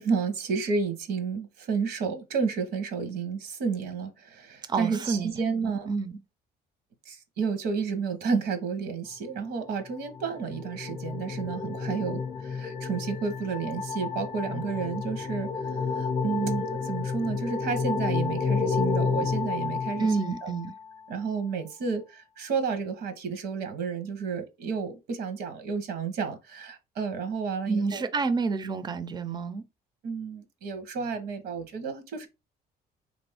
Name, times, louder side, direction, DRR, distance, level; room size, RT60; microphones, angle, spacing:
voice 1, 0.0-5.9 7.1-15.5 16.0-20.5 21.1-28.1 30.0-32.3, right 5 dB, 75° right, 0.9 m, -31 dB
voice 2, 4.7-5.3 5.9-6.2 20.0-20.7 27.7-29.6, right 4 dB, 25° right, 0.4 m, -28 dB
sound 1, 9.9-20.7, left 5 dB, 30° left, 0.5 m, -30 dB
3.7 x 2.6 x 3.4 m
cardioid pair, 110°, 17 cm